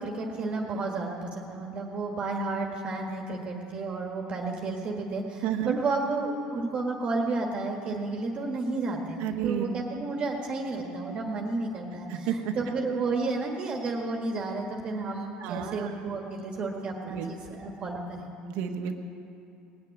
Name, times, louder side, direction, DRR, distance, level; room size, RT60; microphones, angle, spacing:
voice 1, 0.0-18.3, right 3 dB, 40° right, 1 dB, 1.6 m, -32 dB
voice 2, 5.4-5.8 9.2-9.8 12.1-12.5 15.4-15.9 17.0-17.6 18.5-18.9, right 9 dB, 75° right, 5 dB, 1.1 m, -31 dB
19.0 x 6.9 x 9.4 m, 2.7 s
cardioid pair, 120°, 3 cm